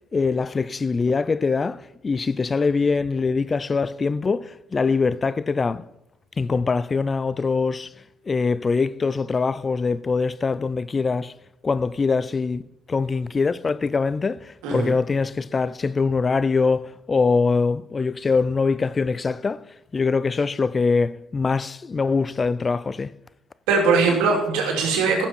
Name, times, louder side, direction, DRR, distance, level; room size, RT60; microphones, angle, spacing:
voice 1, 0.1-5.8 6.4-7.9 8.3-11.3 11.6-12.6 12.9-19.6 19.9-23.1, left 4 dB, 35° left, 0.4 m, -23 dB
voice 2, 14.6-14.9 23.7-25.3, right 4 dB, 90° right, 2.8 m, -20 dB
15.0 x 7.2 x 4.5 m
supercardioid pair, 75°, 0 cm